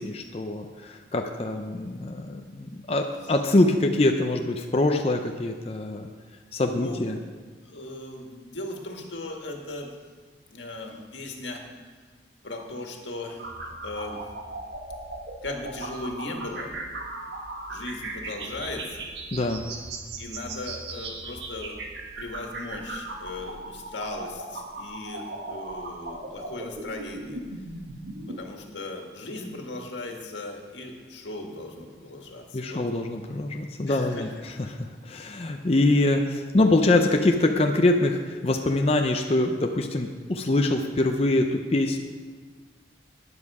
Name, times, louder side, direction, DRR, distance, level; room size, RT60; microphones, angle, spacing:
voice 1, 0.0-6.1 6.5-7.2 19.3-19.7 32.5-42.0, left 2 dB, 35° left, 4 dB, 0.6 m, -24 dB
voice 2, 7.7-9.9 10.5-11.6 12.4-14.2 15.4-16.7 17.7-19.1 20.2-21.8 22.2-27.4 28.3-32.8 33.9-34.3, left 2 dB, 90° left, 2 dB, 1.8 m, -37 dB
sound 1, 13.4-28.4, right 2 dB, 75° right, 1.5 m, -38 dB
12.5 x 9.7 x 4.9 m, 1.5 s
head